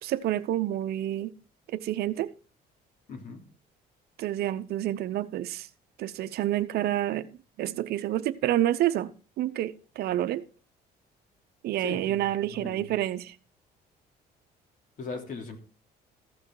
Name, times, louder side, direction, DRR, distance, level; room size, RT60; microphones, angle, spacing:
voice 1, 0.0-1.3 1.7-2.3 4.2-5.7 6.0-7.3 7.6-9.1 9.4-10.4 11.6-13.3, right 13 dB, 70° right, 0.8 m, -28 dB
voice 2, 3.1-3.4 11.8-12.9 15.0-15.6, left 4 dB, 50° left, 3.1 m, -39 dB
14.5 x 6.2 x 4.7 m
cardioid pair, 110°, 17 cm